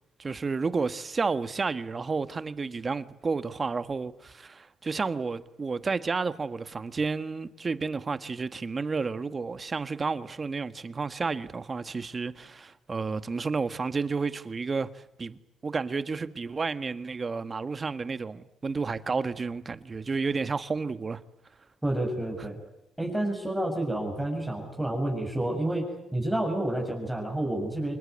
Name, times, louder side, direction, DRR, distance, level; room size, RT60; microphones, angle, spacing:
voice 1, 0.2-21.2, right 4 dB, 35° right, 1.5 m, -31 dB
voice 2, 21.8-22.6 23.0-25.8 26.1-28.0, right 1 dB, 5° right, 7.2 m, -29 dB
26.5 x 20.5 x 9.6 m
cardioid pair, 90°, 0 cm